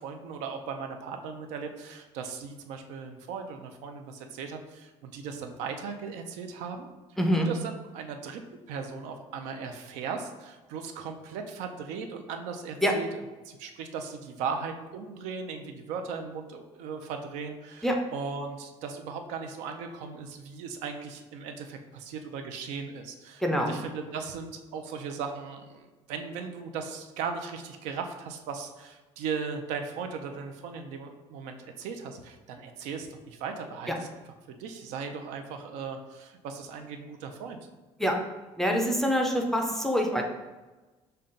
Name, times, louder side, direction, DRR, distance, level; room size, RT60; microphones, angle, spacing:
voice 1, 0.0-6.9 7.3-8.4 8.7-34.1 34.5-37.6, right 5 dB, 90° right, 5 dB, 0.5 m, -37 dB
voice 2, 7.2-7.5 12.8-12.9 17.8-18.0 23.4-23.7 33.9-34.0 38.0-38.2 38.6-40.2, equal, 5° left, 2 dB, 0.4 m, -25 dB
5.4 x 2.2 x 3.8 m, 1.2 s
cardioid pair, 155°, 12 cm